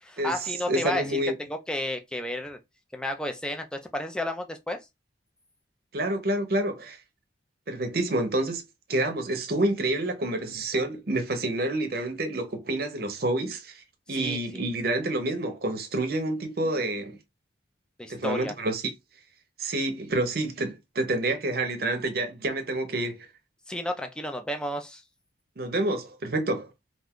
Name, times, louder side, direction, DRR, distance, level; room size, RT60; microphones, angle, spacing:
voice 1, 0.0-1.2 1.5-2.6 2.9-4.8 14.1-14.6 18.0-18.5 23.7-25.0, left 1 dB, 5° left, 0.3 m, -32 dB
voice 2, 0.7-1.3 5.9-7.0 7.7-8.6 8.9-13.8 14.1-17.2 18.1-18.8 19.6-23.3 25.6-26.7, right 1 dB, 50° right, 0.6 m, -28 dB
2.4 x 2.3 x 3.5 m
head